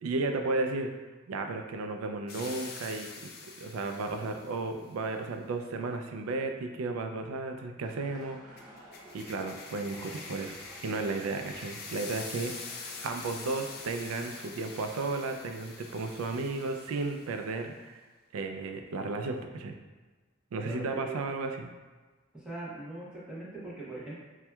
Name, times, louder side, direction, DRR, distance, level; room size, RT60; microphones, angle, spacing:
voice 1, 0.0-0.9 1.3-3.3 3.6-8.7 9.1-18.0 18.3-19.8 20.5-21.7, right 3 dB, 90° right, 5 dB, 0.3 m, -34 dB
sound 1, 2.3-4.6 8.6-17.5, left 4 dB, 50° left, 0.4 m, -45 dB
sound 2, 7.8-17.2, equal, 20° right, 1.1 m, -54 dB
voice 2, 20.6-21.2 22.3-24.2, right 2 dB, 5° right, -9 dB, 0.6 m, -41 dB
4.3 x 2.2 x 2.2 m, 1.3 s
head